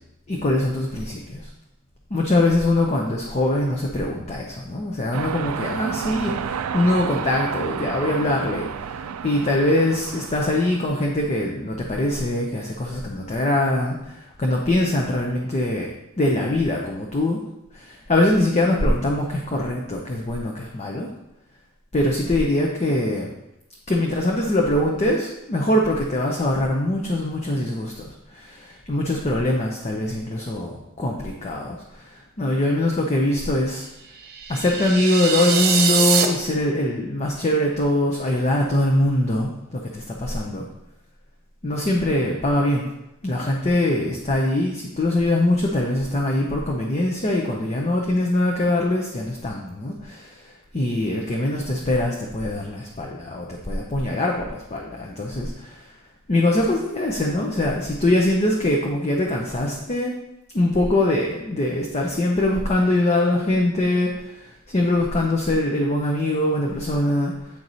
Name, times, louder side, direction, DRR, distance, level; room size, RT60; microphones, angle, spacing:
voice 1, 0.3-1.5 2.1-15.9 16.2-17.4 17.7-21.1 21.9-23.3 23.9-33.9 34.5-40.6 41.6-42.9 43.2-55.9 56.3-60.2 60.5-67.5, left 1 dB, 30° left, -1 dB, 0.7 m, -23 dB
sound 1, 5.1-10.8, right 7 dB, 85° right, 0.4 m, -31 dB
sound 2, 34.2-36.2, right 6 dB, 45° right, 0.9 m, -23 dB
8.6 x 4.7 x 4.0 m, 0.89 s
head